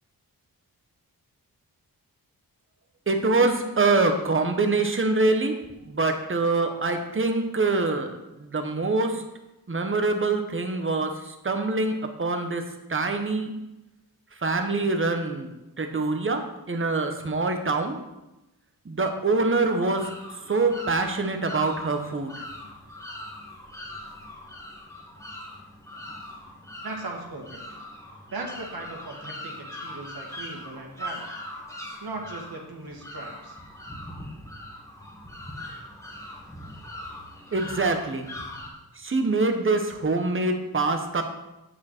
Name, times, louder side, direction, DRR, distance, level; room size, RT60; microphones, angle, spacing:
voice 1, 3.1-5.5 5.9-8.1 8.4-9.2 9.7-11.1 11.4-12.6 12.9-13.5 14.4-15.5 15.8-16.4 16.7-18.0 18.9-20.0 20.5-22.3 37.5-38.3 39.0-41.2, right 3 dB, 35° right, 5 dB, 1.1 m, -24 dB
sound 1, 19.6-38.7, left 1 dB, 10° left, 1.7 m, -41 dB
voice 2, 26.8-27.6 28.3-31.3 32.0-33.6, right 2 dB, 70° right, 1 dB, 1.8 m, -38 dB
8.4 x 7.4 x 4.4 m, 0.97 s
wide cardioid pair, 120°, 38 cm